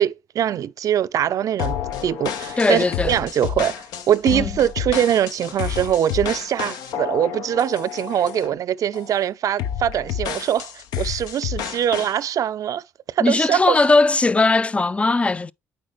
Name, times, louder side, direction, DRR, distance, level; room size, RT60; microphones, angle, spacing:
voice 1, 0.0-12.8 13.1-13.8, right 10 dB, 60° right, 0.4 m, -22 dB
sound 1, 1.6-8.6 8.9-9.2 9.6-12.2, left 9 dB, 75° left, 0.7 m, -30 dB
voice 2, 2.6-3.2 4.3-4.5 13.2-15.5, left 3 dB, 20° left, 0.4 m, -19 dB
8.7 x 4.5 x 3.1 m
supercardioid pair, 65°, 7 cm